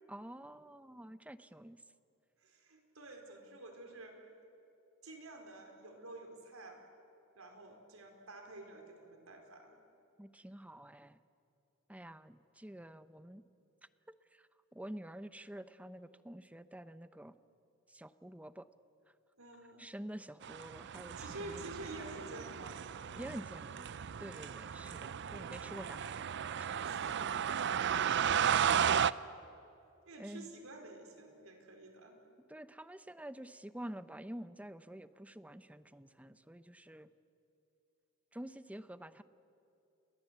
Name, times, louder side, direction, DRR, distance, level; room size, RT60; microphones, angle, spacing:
voice 1, 0.1-1.8 10.2-11.2 11.9-13.4 14.3-17.3 17.9-18.7 19.8-21.6 23.2-23.9 24.2-26.7 27.2-27.3 30.2-30.5 32.5-37.1 38.3-39.2, right 1 dB, 5° right, 13 dB, 0.7 m, -48 dB
voice 2, 2.4-4.3 5.0-6.8 7.3-9.8 19.4-19.9 21.2-22.9 26.8-27.2 30.0-32.2, right 2 dB, 90° right, 4 dB, 4.5 m, -50 dB
sound 1, 20.4-29.1, right 8 dB, 60° right, 0.5 m, -34 dB
29.5 x 21.0 x 8.1 m, 2.8 s
head